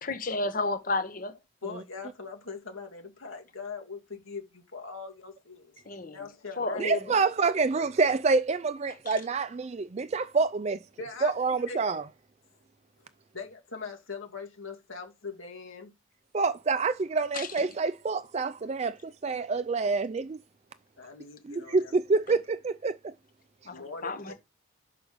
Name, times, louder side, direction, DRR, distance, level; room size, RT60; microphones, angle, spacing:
voice 1, 0.0-1.3 5.9-6.2 6.6-7.2 9.1-9.2 17.3-17.7 23.6-24.3, left 2 dB, 40° left, 0.9 m, -32 dB
voice 2, 1.6-5.8 6.1-6.9 7.2-7.3 11.0-11.8 13.3-15.9 21.0-21.9 23.7-24.3, left 4 dB, 75° left, 2.0 m, -41 dB
voice 3, 6.8-10.8 11.2-12.0 16.3-20.4 21.5-23.1, right 4 dB, 30° right, 0.3 m, -27 dB
6.2 x 4.9 x 4.9 m
head